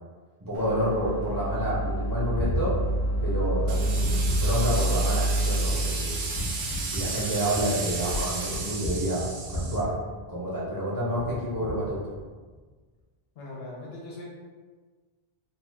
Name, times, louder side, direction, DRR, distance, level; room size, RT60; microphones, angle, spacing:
voice 1, 0.4-2.7 3.2-6.2 6.8-9.9 10.3-12.1, right 1 dB, 20° right, -9 dB, 0.7 m, -29 dB
sound 1, 0.5-7.6, right 1 dB, 85° right, 1.0 m, -28 dB
Gunshot gunfire, 1.3-10.7 11.1-12.6, equal, 45° left, 0.6 m, -36 dB
sound 2, 3.7-9.8, right 4 dB, 60° right, 0.7 m, -34 dB
voice 2, 13.4-14.2, left 2 dB, 70° left, -4 dB, 0.9 m, -40 dB
2.5 x 2.4 x 3.2 m, 1.4 s
omnidirectional pair, 1.1 m